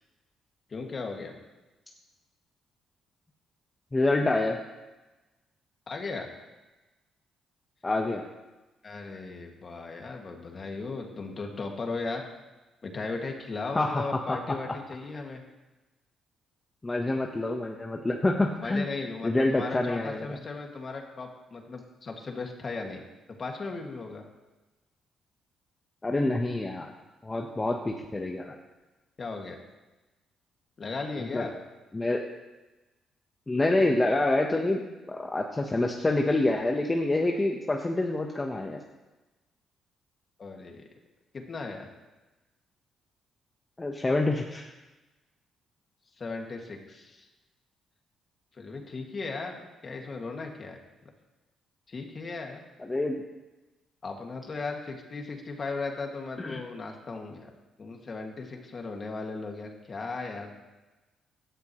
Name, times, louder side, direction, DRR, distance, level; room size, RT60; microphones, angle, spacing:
voice 1, 0.7-1.3 5.9-6.3 8.8-12.3 12.8-15.4 18.6-23.0 23.4-24.2 29.2-29.6 30.8-31.5 40.4-40.9 41.3-41.9 46.2-47.3 48.5-51.1 51.9-52.6 54.0-60.5, left 3 dB, 40° left, 2 dB, 2.2 m, -37 dB
voice 2, 3.9-4.6 7.8-8.2 13.7-14.4 16.8-18.9 19.2-20.3 26.0-26.9 27.2-28.6 31.2-31.4 31.9-32.2 33.5-34.8 35.1-38.8 43.8-44.7 52.8-53.2 56.4-56.6, left 2 dB, 20° left, 1 dB, 1.1 m, -27 dB
16.5 x 11.5 x 3.2 m, 1.1 s
cardioid pair, 90°, 0 cm